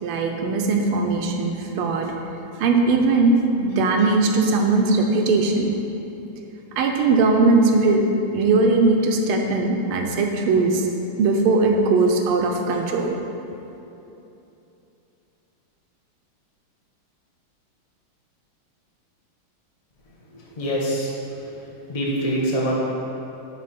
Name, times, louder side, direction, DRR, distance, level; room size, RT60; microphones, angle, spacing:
voice 1, 0.0-2.1 2.6-5.7 6.8-8.0 8.3-10.9 11.2-13.2, right 3 dB, 80° right, 2 dB, 1.5 m, -19 dB
voice 2, 20.3-21.1 21.9-22.7, right 1 dB, 30° left, -5 dB, 0.6 m, -24 dB
10.0 x 3.8 x 4.1 m, 2.9 s
omnidirectional pair, 2.4 m